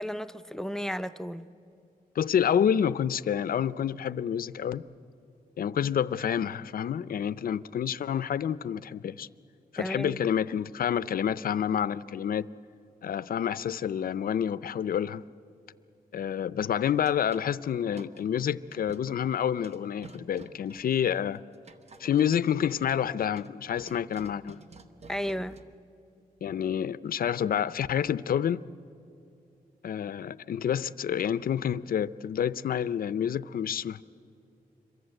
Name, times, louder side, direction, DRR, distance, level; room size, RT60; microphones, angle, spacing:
voice 1, 0.0-1.5 9.8-10.2 25.1-25.6, equal, 5° left, 0.6 m, -33 dB
voice 2, 2.2-4.8 5.6-9.3 9.7-12.5 13.0-15.2 16.1-21.4 22.0-24.6 26.4-28.6 29.8-34.0, left 9 dB, 70° left, 0.5 m, -28 dB
sound 1, 17.0-18.2 18.7-19.2 19.6-25.7, right 4 dB, 45° right, 1.1 m, -51 dB
26.5 x 23.0 x 7.7 m
wide cardioid pair, 140°, 16 cm